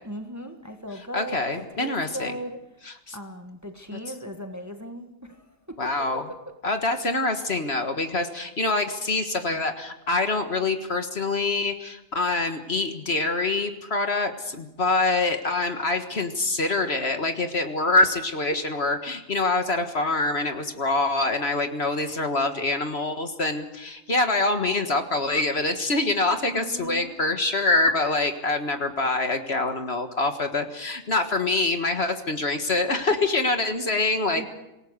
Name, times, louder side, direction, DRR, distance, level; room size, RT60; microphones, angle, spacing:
voice 1, 0.0-2.6 3.1-5.9 6.3-6.4 26.5-27.2 34.3-34.5, equal, 10° right, 5 dB, 1.6 m, -37 dB
voice 2, 1.1-2.3 3.1-3.2 5.8-6.2 6.6-34.5, left 3 dB, 50° left, 6 dB, 1.8 m, -25 dB
27.0 x 18.0 x 6.6 m, 0.92 s
omnidirectional pair, 1.4 m